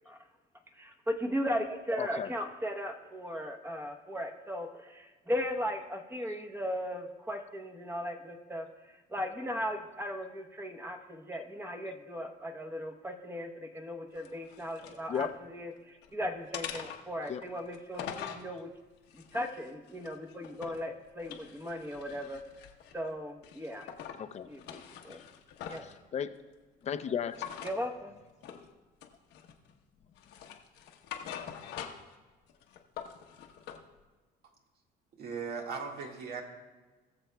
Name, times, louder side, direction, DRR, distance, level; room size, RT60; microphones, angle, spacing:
voice 1, 0.7-18.7 19.1-22.4 22.9-23.9 24.5-25.2 25.7-25.8 27.6-28.1, equal, 15° right, 4 dB, 1.0 m, -37 dB
voice 2, 2.0-2.3 15.1-15.3 17.3-17.4 24.2-24.5 25.8-26.4 26.8-27.5, left 8 dB, 40° left, 10 dB, 0.6 m, -35 dB
sound 1, 14.2-15.3 15.8-16.1 16.5-18.5 19.1-20.9 21.2-23.0 23.4-24.2 24.5-26.0 27.3-27.8 28.4-28.7 29.0-29.7 30.2-32.2 32.5-33.8, left 9 dB, 85° left, 1.0 m, -44 dB
voice 3, 35.2-36.4, right 5 dB, 65° right, 1 dB, 1.7 m, -38 dB
20.5 x 7.0 x 2.3 m, 1.3 s
cardioid pair, 110°, 17 cm